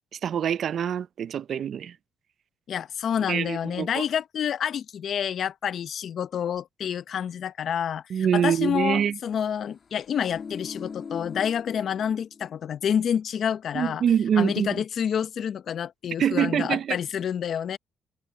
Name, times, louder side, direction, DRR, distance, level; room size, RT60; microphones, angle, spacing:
voice 1, 0.2-2.0 3.3-4.0 8.1-9.2 13.7-14.8 16.2-17.0, right 8 dB, 60° right, 0.6 m, -25 dB
voice 2, 2.7-14.0 14.4-17.8, left 8 dB, 60° left, 0.8 m, -28 dB
sound 1, 10.0-12.6 12.9-13.1, left 6 dB, 45° left, 2.4 m, -40 dB
cardioid pair, 90°, 0 cm